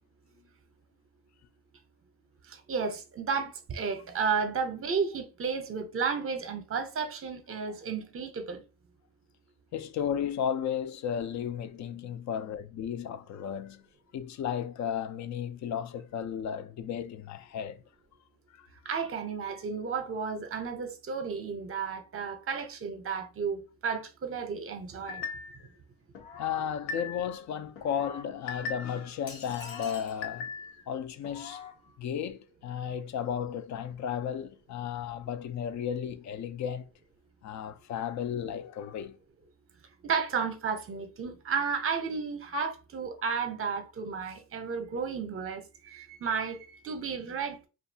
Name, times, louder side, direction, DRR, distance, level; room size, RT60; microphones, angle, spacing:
voice 1, 2.5-8.6 18.9-25.2 40.0-47.6, right 5 dB, 35° right, 0.7 m, -33 dB
voice 2, 9.7-13.8 14.1-17.8 18.5-18.7 26.4-30.5 30.9-31.6 32.0-36.9 37.4-39.2, left 8 dB, 45° left, 0.4 m, -34 dB
sound 1, 25.1-25.7 26.1-27.4 27.8-29.1 29.5-30.8 31.2-31.7, left 5 dB, 90° left, 0.7 m, -40 dB
sound 2, 29.3-30.3, left 4 dB, 60° left, 1.2 m, -46 dB
2.6 x 2.4 x 2.6 m
cardioid pair, 100°, 40 cm